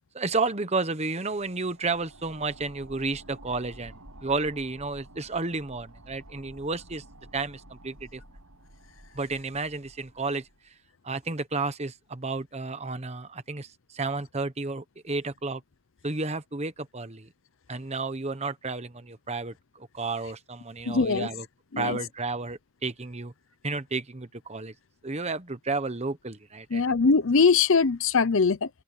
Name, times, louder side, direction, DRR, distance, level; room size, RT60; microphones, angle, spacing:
voice 1, 0.1-3.9 4.2-7.0 7.3-8.2 9.1-10.7 11.0-15.6 16.0-17.3 17.7-21.4 21.8-23.3 23.6-24.7 25.0-26.8, right 3 dB, 30° right, 1.1 m, -32 dB
sound 1, 1.4-10.7, right 1 dB, 80° right, 6.9 m, -51 dB
voice 2, 20.9-21.3 21.7-22.0 26.7-28.7, left 4 dB, 60° left, 0.7 m, -22 dB
open air
head